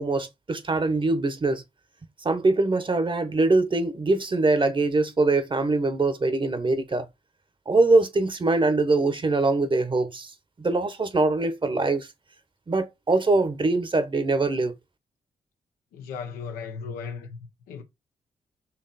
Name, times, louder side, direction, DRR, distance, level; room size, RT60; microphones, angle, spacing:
voice 1, 0.0-1.6 2.2-7.1 7.7-10.3 10.6-12.1 12.7-14.7, right 3 dB, 35° right, 1.0 m, -23 dB
voice 2, 15.9-17.4 17.7-17.8, left 5 dB, 85° left, 0.8 m, -36 dB
4.3 x 2.9 x 4.2 m
supercardioid pair, 45°, 15 cm